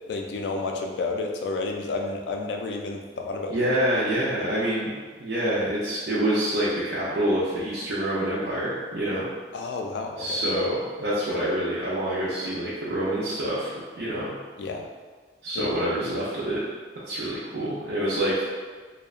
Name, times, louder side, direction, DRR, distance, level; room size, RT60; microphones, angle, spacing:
voice 1, 0.1-3.7 4.4-4.5 9.5-10.4 14.6-14.9 15.6-15.7, left 3 dB, 75° left, 2 dB, 0.3 m, -31 dB
voice 2, 3.5-9.3 10.2-14.4 15.4-16.6 17.1-18.5, right 1 dB, 70° right, -8 dB, 0.5 m, -27 dB
2.7 x 2.1 x 2.4 m, 1.4 s
head